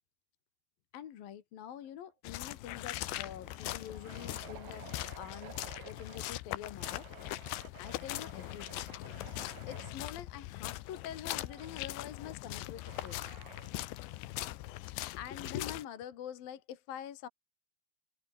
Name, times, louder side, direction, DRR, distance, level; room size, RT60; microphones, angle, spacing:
voice 1, 0.9-4.8 5.2-5.5 5.9-7.1 7.8-9.1 9.7-13.3 15.1-17.3, left 10 dB, 55° left, 3.0 m, -45 dB
sound 1, 1.8-2.1 2.4-2.5 3.1-6.3 6.8-10.0 11.3-11.7 12.8-13.8, right 9 dB, 55° right, 2.2 m, -53 dB
sound 2, 2.2-15.9, left 17 dB, 75° left, 3.0 m, -41 dB
omnidirectional pair, 5.8 m